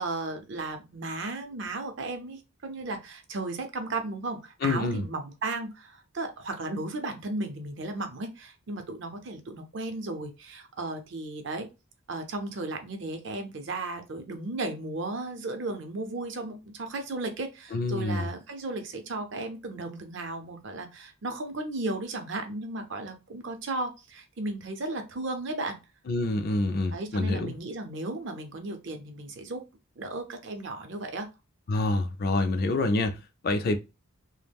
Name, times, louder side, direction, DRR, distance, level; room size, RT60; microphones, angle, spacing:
voice 1, 0.0-11.7 12.1-25.8 26.9-29.6 30.0-31.3, right 2 dB, 55° right, 0.5 m, -35 dB
voice 2, 4.6-5.0 17.7-18.3 26.1-27.6 31.7-33.8, left 2 dB, 45° left, 0.3 m, -27 dB
2.3 x 2.0 x 3.4 m
head